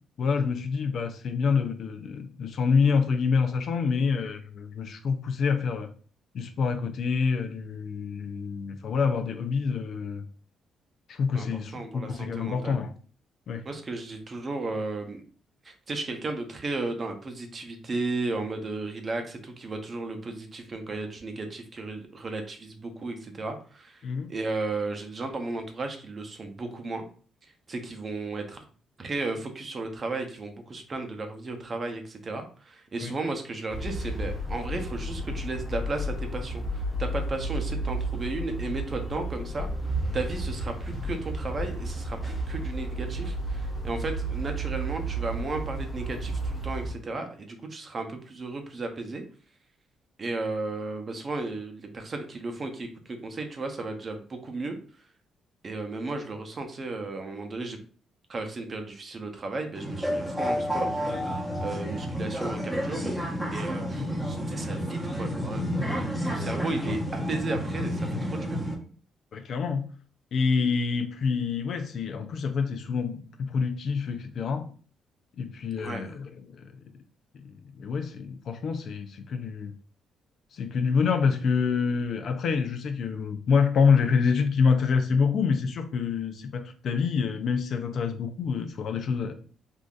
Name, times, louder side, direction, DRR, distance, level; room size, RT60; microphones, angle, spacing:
voice 1, 0.2-5.9 6.3-10.2 11.1-12.9 13.5-13.6 24.0-24.3 33.0-33.1 63.9-64.1 69.3-69.9 70.3-74.7 75.4-76.8 77.3-79.7 80.5-89.3, left 5 dB, 65° left, 0.4 m, -27 dB
voice 2, 11.3-12.8 13.6-15.2 15.6-24.0 24.3-27.0 27.7-28.6 29.0-39.7 40.1-49.2 50.2-54.8 55.6-57.8 58.3-61.0 61.6-63.1 63.5-65.7 66.0-68.6 75.8-76.1, right 3 dB, 40° right, 0.7 m, -34 dB
sound 1, 33.7-46.9, right 1 dB, 25° left, 1.0 m, -32 dB
sound 2, 59.8-68.7, equal, 5° right, 0.8 m, -30 dB
3.7 x 2.6 x 2.4 m
cardioid pair, 90°, 0 cm